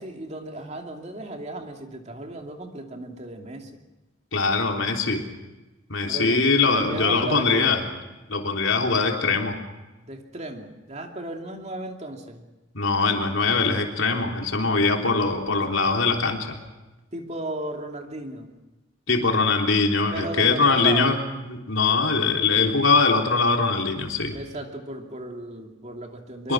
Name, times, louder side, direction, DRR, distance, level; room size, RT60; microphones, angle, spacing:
voice 1, 0.0-3.8 6.1-7.7 10.0-12.5 17.1-18.6 20.1-21.2 24.3-26.5, right 1 dB, 35° right, 3 dB, 2.7 m, -35 dB
voice 2, 4.3-5.2 5.9-7.8 8.3-9.6 12.7-16.6 19.1-21.2 21.5-24.4 26.4-26.5, left 4 dB, 80° left, 2 dB, 3.6 m, -22 dB
24.5 x 23.0 x 6.2 m, 1.1 s
head